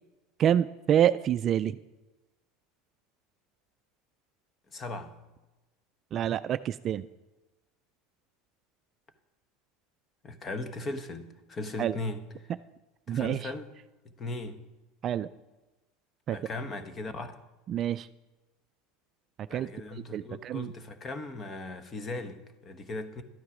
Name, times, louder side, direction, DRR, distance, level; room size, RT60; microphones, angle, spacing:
voice 1, 0.4-1.7 6.1-7.1 11.8-12.0 13.1-13.4 15.0-15.3 16.3-16.4 17.7-18.1 19.5-19.7 20.1-20.7, right 10 dB, 40° right, 0.3 m, -27 dB
voice 2, 4.7-5.2 10.2-12.5 13.1-13.7 14.2-14.6 16.3-17.4 19.5-23.2, left 2 dB, 25° left, 1.0 m, -38 dB
12.0 x 9.6 x 4.9 m
supercardioid pair, 130°, 0 cm